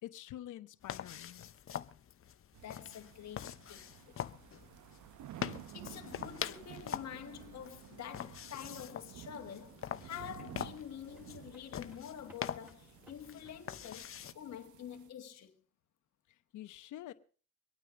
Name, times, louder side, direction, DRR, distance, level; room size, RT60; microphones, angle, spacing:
voice 1, 0.0-1.5 16.3-17.1, left 13 dB, 80° left, 1.0 m, -47 dB
sound 1, 0.8-14.3, left 9 dB, 45° left, 0.8 m, -44 dB
sound 2, 2.5-15.1, right 12 dB, 75° right, 0.9 m, -53 dB
voice 2, 2.6-4.2 5.7-15.6, left 9 dB, 60° left, 1.8 m, -47 dB
sound 3, 9.2-14.4, equal, 5° right, 3.3 m, -64 dB
24.5 x 9.1 x 5.1 m
cardioid pair, 90°, 30 cm